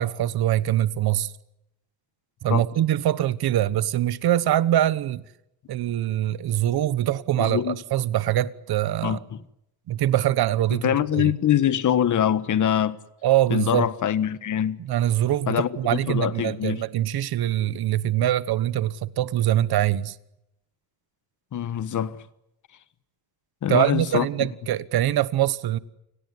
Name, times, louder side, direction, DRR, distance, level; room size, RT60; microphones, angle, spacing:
voice 1, 0.0-1.3 2.4-5.2 5.7-9.2 9.9-11.3 13.2-13.9 14.8-20.2 23.7-25.8, right 12 dB, 75° right, 1.2 m, -23 dB
voice 2, 7.4-7.8 9.0-9.4 10.7-13.0 13.5-14.8 15.5-16.8 21.5-22.2 23.6-24.2, left 10 dB, 50° left, 1.4 m, -24 dB
29.5 x 18.5 x 9.5 m
cardioid pair, 160°, 37 cm